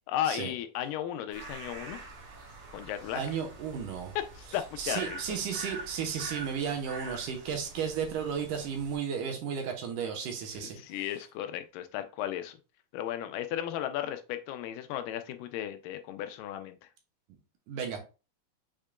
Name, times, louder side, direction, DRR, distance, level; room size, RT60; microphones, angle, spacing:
voice 1, 0.1-2.0 2.7-3.4 4.2-5.2 10.5-12.6 12.9-16.9, left 11 dB, 90° left, 2.3 m, -35 dB
sound 1, 1.3-9.0, right 3 dB, 50° right, 2.0 m, -45 dB
voice 2, 3.2-4.1 4.8-11.0 17.7-18.0, right 7 dB, 75° right, 2.5 m, -34 dB
6.2 x 3.6 x 2.2 m
omnidirectional pair, 3.8 m